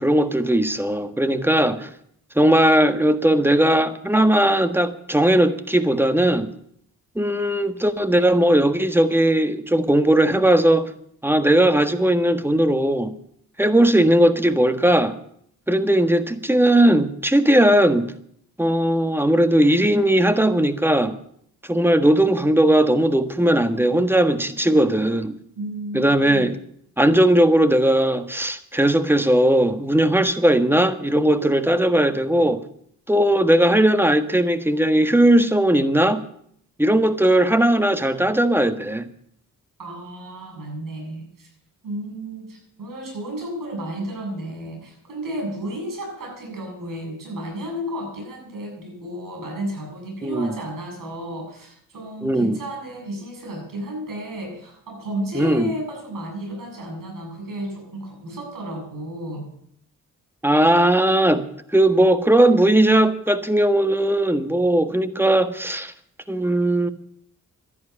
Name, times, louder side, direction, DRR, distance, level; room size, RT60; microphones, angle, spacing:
voice 1, 0.0-1.9 2.3-6.5 7.1-10.9 11.2-13.1 13.6-15.1 15.7-18.1 18.6-21.2 21.7-25.3 25.9-26.5 27.0-32.6 33.1-36.2 36.8-39.0 50.2-50.5 52.2-52.6 55.3-55.7 60.4-61.4 61.7-65.9 66.3-66.9, right 1 dB, 5° right, 1.5 m, -18 dB
voice 2, 25.6-26.5 39.8-41.5 41.8-59.5, right 1 dB, 75° right, 7.4 m, -32 dB
12.5 x 11.0 x 9.7 m
cardioid pair, 65°, 33 cm